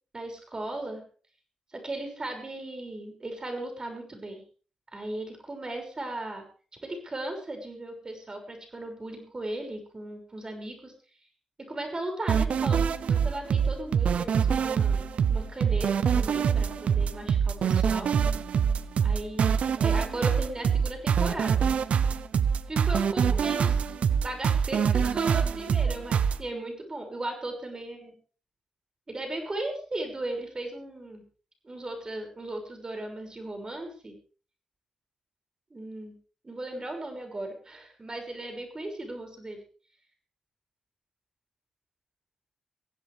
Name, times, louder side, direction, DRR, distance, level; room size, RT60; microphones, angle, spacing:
voice 1, 0.1-1.0 1.7-4.4 4.9-6.4 6.8-10.9 11.7-18.1 19.0-21.7 22.7-23.8 24.2-28.1 29.1-31.2 31.6-34.2 35.7-36.1 36.4-39.6, right 1 dB, 35° right, 4 dB, 6.2 m, -37 dB
sound 1, 12.3-26.4, right 7 dB, 65° right, 0.8 m, -24 dB
21.0 x 15.5 x 3.5 m, 0.38 s
hypercardioid pair, 40°, 2 cm